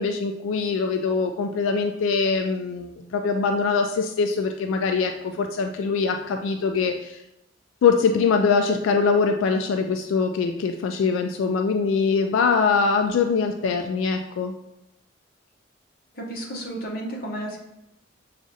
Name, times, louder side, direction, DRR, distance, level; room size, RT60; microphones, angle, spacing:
voice 1, 0.0-7.2 7.8-14.5, left 5 dB, 90° left, 5 dB, 0.3 m, -23 dB
voice 2, 16.1-17.6, right 1 dB, 50° left, -2 dB, 0.9 m, -32 dB
6.0 x 2.4 x 2.6 m, 0.84 s
head